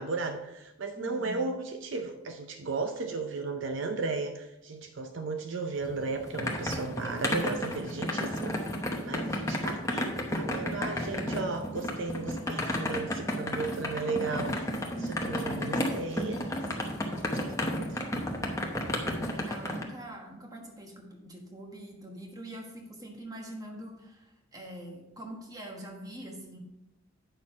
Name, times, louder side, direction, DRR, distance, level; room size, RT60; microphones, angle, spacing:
voice 1, 0.0-16.4 17.0-17.4 17.8-18.0, right 3 dB, 65° right, 6 dB, 0.6 m, -35 dB
voice 2, 1.0-1.4 9.0-9.5 14.9-15.3 19.3-26.6, right 1 dB, 20° right, 1 dB, 1.3 m, -44 dB
sound 1, 5.8-19.8, left 1 dB, 15° left, 0.9 m, -32 dB
8.8 x 6.3 x 4.3 m, 0.93 s
head